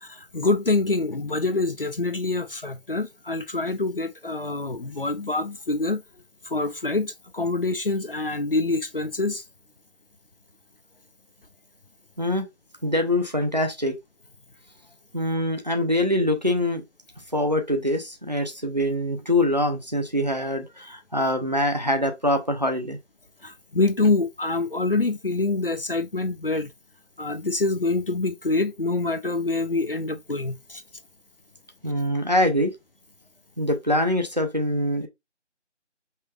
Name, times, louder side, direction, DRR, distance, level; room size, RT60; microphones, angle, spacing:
voice 1, 0.0-6.0 6.4-9.4 23.4-26.7 27.2-30.8, left 3 dB, 50° left, 0.5 m, -26 dB
voice 2, 12.8-14.0 15.1-16.8 17.3-23.0 31.8-32.7 33.6-35.1, left 1 dB, 35° right, 0.6 m, -24 dB
5.5 x 3.2 x 2.3 m
figure-of-eight pair, 170°, 36 cm